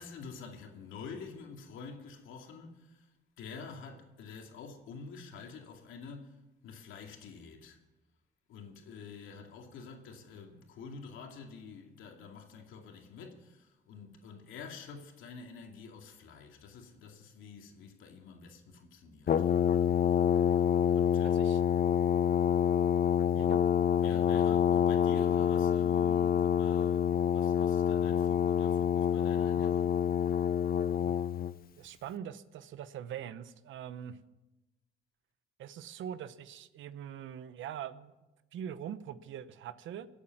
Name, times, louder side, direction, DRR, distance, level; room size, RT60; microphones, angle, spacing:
voice 1, 0.0-3.1 3.4-6.3 6.6-7.8 8.5-19.3 20.9-21.7 24.0-30.0, left 5 dB, 85° left, 2.4 m, -48 dB
Brass instrument, 19.3-31.5, left 8 dB, 50° left, 0.6 m, -27 dB
voice 2, 21.2-21.6 23.3-23.6 31.0-31.1 31.8-34.2 35.6-38.1 38.5-40.1, right 9 dB, 75° right, 0.9 m, -43 dB
25.0 x 8.4 x 6.0 m
cardioid pair, 90°, 20 cm